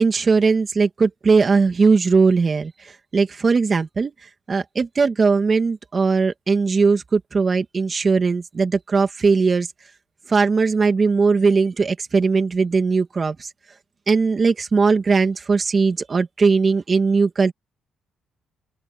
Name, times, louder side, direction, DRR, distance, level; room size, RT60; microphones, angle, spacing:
voice 1, 0.0-9.7 10.3-13.5 14.1-17.5, right 4 dB, 35° right, 2.5 m, -19 dB
open air
cardioid pair, 90°, 0 cm